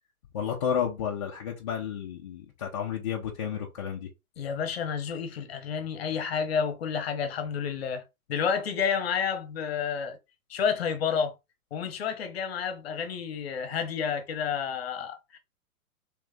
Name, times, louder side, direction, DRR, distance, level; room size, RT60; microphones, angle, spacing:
voice 1, 0.3-4.1, left 8 dB, 20° left, 0.5 m, -31 dB
voice 2, 4.4-8.0 8.3-10.2 10.5-11.3 11.7-15.4, left 7 dB, 45° left, 0.9 m, -30 dB
3.1 x 3.1 x 3.4 m
figure-of-eight pair, 110°, 44 cm